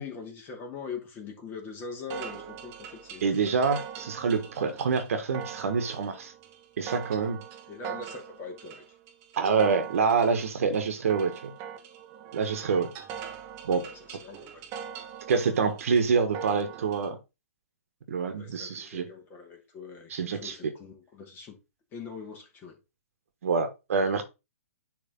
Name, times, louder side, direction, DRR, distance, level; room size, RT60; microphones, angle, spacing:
voice 1, 0.0-3.3 7.7-8.8 13.3-13.4 13.7-14.7 18.4-21.6 21.9-22.8, left 5 dB, 25° left, 2.4 m, -42 dB
sound 1, 2.1-17.1, right 8 dB, 30° right, 1.0 m, -42 dB
voice 2, 3.2-6.3 6.8-7.4 9.4-11.5 12.3-12.9 13.6-13.8 15.3-17.2 18.1-19.1 20.1-20.7 23.4-24.2, right 5 dB, 60° right, 1.4 m, -26 dB
10.0 x 3.5 x 3.8 m
figure-of-eight pair, 125°, 8 cm